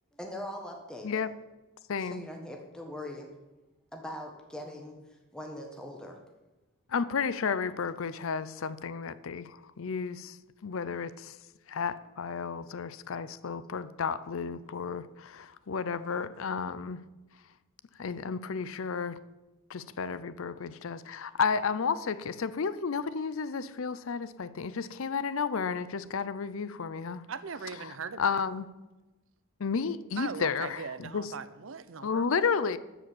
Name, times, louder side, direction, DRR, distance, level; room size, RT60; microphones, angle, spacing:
voice 1, 0.1-1.2 2.0-3.3 3.9-6.2, left 1 dB, 5° left, 1.4 m, -41 dB
voice 2, 1.9-2.2 6.9-10.4 10.6-11.4 11.7-17.0 18.0-19.2 19.7-27.2 27.8-28.7 29.6-31.3 32.0-32.8, left 5 dB, 65° left, 0.5 m, -32 dB
voice 3, 27.3-28.4 30.2-32.4, right 5 dB, 65° right, 0.6 m, -40 dB
13.0 x 5.1 x 9.0 m
head